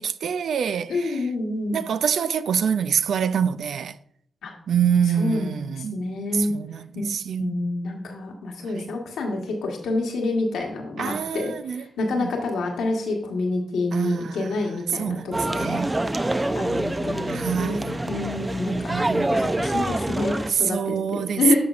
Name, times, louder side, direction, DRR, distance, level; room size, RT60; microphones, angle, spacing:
voice 1, 0.0-1.3 1.7-4.0 4.7-7.6 8.7-8.9 11.0-12.3 13.9-14.5 15.0-15.9 17.3-17.9 18.7-19.4 20.5-21.6, right 7 dB, 75° right, 0.3 m, -26 dB
voice 2, 0.9-1.8 4.4-4.5 5.2-5.6 5.9-6.5 6.9-7.1 7.4-15.8 16.5-19.0 19.3-21.6, left 2 dB, 85° left, 1.3 m, -28 dB
sound 1, 15.3-20.5, right 1 dB, 20° right, 0.5 m, -26 dB
13.0 x 4.4 x 2.5 m
supercardioid pair, 50°, 0 cm